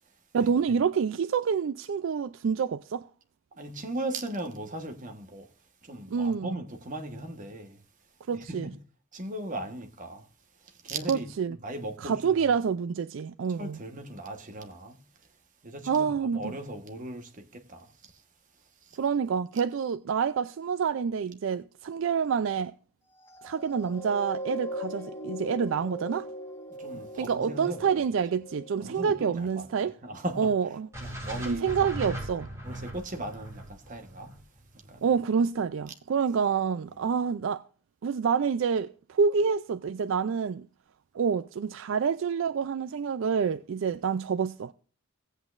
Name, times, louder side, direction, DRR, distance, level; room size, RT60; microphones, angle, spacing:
voice 1, 0.3-3.0 6.1-6.6 8.3-8.7 11.1-11.6 12.0-13.8 15.9-16.6 19.0-22.7 23.4-26.3 27.2-30.0 30.4-30.9 31.5-32.5 35.0-37.6 38.0-40.7 41.1-44.7, right 6 dB, 65° right, 0.4 m, -27 dB
voice 2, 3.6-5.5 5.8-7.8 8.3-8.8 9.1-10.2 10.8-12.4 13.6-15.0 15.6-17.9 26.8-27.8 28.8-30.5 31.0-31.7 32.6-34.4 34.9-35.0, right 1 dB, 40° right, 1.2 m, -38 dB
sound 1, 23.2-29.8 30.5-30.6, equal, 15° left, 1.3 m, -40 dB
sound 2, 30.9-35.1, right 1 dB, 15° right, 2.5 m, -38 dB
17.5 x 8.2 x 2.5 m
head